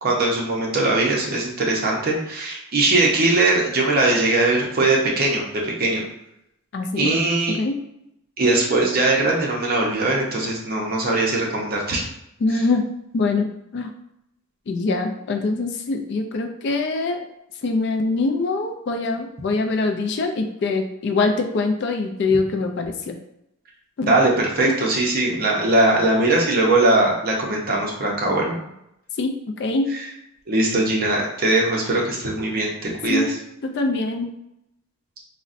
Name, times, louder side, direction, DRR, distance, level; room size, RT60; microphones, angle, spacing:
voice 1, 0.0-6.0 7.0-7.6 8.4-12.0 24.1-28.6 30.5-33.2, right 2 dB, 45° right, -2 dB, 0.6 m, -20 dB
voice 2, 6.7-7.1 7.5-7.7 12.4-12.9 13.1-13.9 14.7-17.2 17.6-23.2 24.0-24.1 24.6-24.8 29.2-29.3 29.6-29.9 33.1-33.3 33.6-34.3, left 3 dB, 50° left, 5 dB, 0.3 m, -23 dB
3.8 x 2.1 x 2.5 m, 0.80 s
head